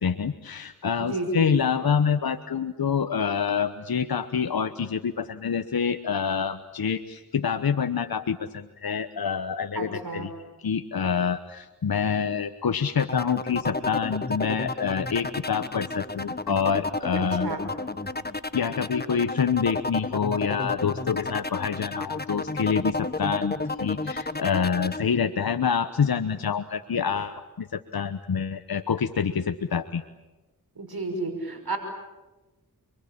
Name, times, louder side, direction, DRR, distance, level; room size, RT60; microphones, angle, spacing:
voice 1, 0.0-10.3 10.6-17.5 18.5-30.0, left 6 dB, 70° left, 9 dB, 1.1 m, -27 dB
voice 2, 1.0-1.5 9.7-10.3 17.2-17.6 30.8-31.8, right 2 dB, 70° right, 5 dB, 5.9 m, -31 dB
sound 1, 13.0-25.0, left 2 dB, 25° left, 1.4 m, -31 dB
29.0 x 23.0 x 8.8 m, 1.1 s
cardioid pair, 45°, 38 cm